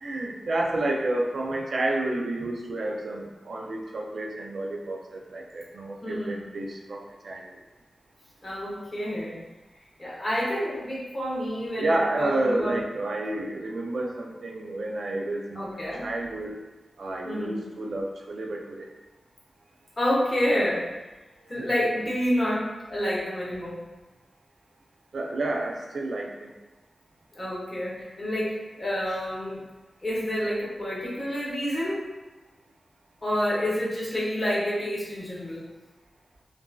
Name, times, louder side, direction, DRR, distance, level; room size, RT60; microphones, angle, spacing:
voice 1, 0.0-7.5 11.8-16.6 17.0-18.9 21.6-21.7 25.1-26.5 29.1-29.2, right 2 dB, 75° right, 0 dB, 0.4 m, -30 dB
voice 2, 6.0-6.5 8.4-9.4 10.0-12.8 15.5-16.1 17.2-17.6 20.0-20.9 21.5-23.8 27.3-29.7 30.0-32.1 33.2-35.6, equal, 35° left, -7 dB, 1.2 m, -28 dB
2.8 x 2.5 x 2.3 m, 1.1 s
cardioid pair, 50°, 0 cm